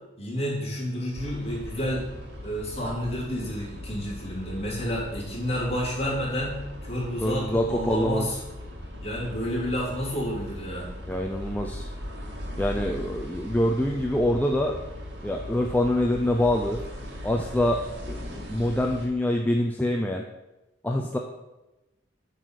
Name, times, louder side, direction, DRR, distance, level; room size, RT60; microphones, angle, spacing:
voice 1, 0.2-2.0 2.4-8.3 9.0-10.9, equal, 35° left, -6 dB, 3.3 m, -30 dB
sound 1, 1.1-19.1, left 1 dB, 70° right, 1.9 m, -39 dB
voice 2, 7.2-8.3 11.1-11.9 12.6-14.7 15.2-16.8 17.2-17.8 18.1-20.2 20.8-21.2, left 1 dB, 10° left, 1 dB, 0.5 m, -25 dB
9.1 x 4.0 x 6.4 m, 0.99 s
head